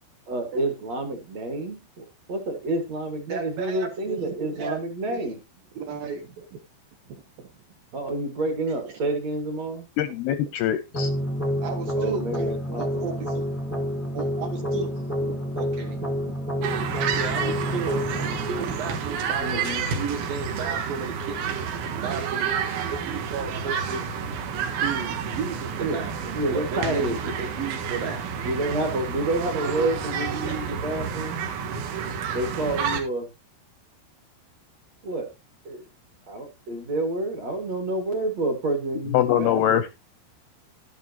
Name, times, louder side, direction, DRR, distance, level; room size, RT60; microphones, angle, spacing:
voice 1, 0.3-5.4 7.9-9.9 11.9-13.1 19.4-19.8 25.8-26.0 26.3-27.3 28.5-31.3 32.3-33.3 35.0-35.3 35.6-35.8 36.3-39.8, right 2 dB, 50° right, 4 dB, 2.3 m, -29 dB
voice 2, 3.3-5.3 5.7-6.6 7.1-7.5 8.8-9.0 11.6-13.5 14.0-21.6 22.0-22.5 22.9-24.1 24.8-28.3 30.4-30.8, right 5 dB, 65° right, 4 dB, 2.4 m, -34 dB
voice 3, 10.0-11.1 39.1-39.9, left 11 dB, 80° left, 12 dB, 2.3 m, -23 dB
sound 1, 10.9-19.9, equal, 10° left, 0.6 m, -29 dB
sound 2, 16.6-33.0, right 6 dB, 90° right, 3.8 m, -30 dB
12.0 x 11.0 x 2.8 m, 0.25 s
omnidirectional pair, 5.2 m